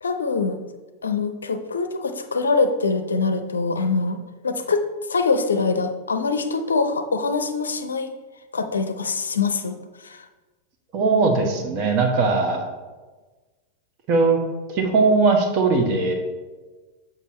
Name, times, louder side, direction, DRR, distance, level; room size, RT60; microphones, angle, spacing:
voice 1, 0.0-0.6 1.0-4.2 4.4-4.8 5.1-8.1 8.5-9.7 10.0-10.2, left 4 dB, 70° left, 8 dB, 0.5 m, -23 dB
voice 2, 10.9-12.6 14.1-14.4 14.7-16.1, right 3 dB, 40° right, 4 dB, 1.1 m, -19 dB
6.9 x 5.5 x 3.1 m, 1.3 s
figure-of-eight pair, 90°, 0 cm